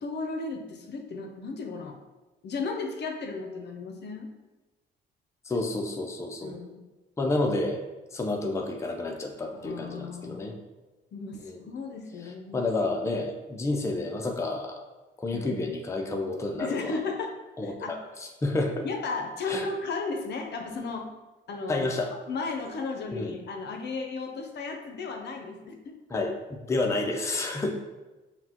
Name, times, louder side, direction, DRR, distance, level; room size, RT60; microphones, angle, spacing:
voice 1, 0.0-1.9 2.4-4.3 6.4-6.8 9.5-10.5 11.1-12.7 15.3-15.7 16.6-17.4 17.6-18.0 18.8-21.1 21.5-21.8 22.3-25.9, left 4 dB, 60° left, 4 dB, 0.6 m, -35 dB
voice 2, 5.5-6.6 7.2-7.8 8.1-10.6 11.3-11.6 12.5-14.8 15.2-16.9 17.6-18.9 19.5-19.7 21.7-22.1 23.1-23.4 26.1-27.7, left 2 dB, 15° left, 1 dB, 0.5 m, -30 dB
5.7 x 2.2 x 2.9 m, 1.1 s
cardioid pair, 90°, 20 cm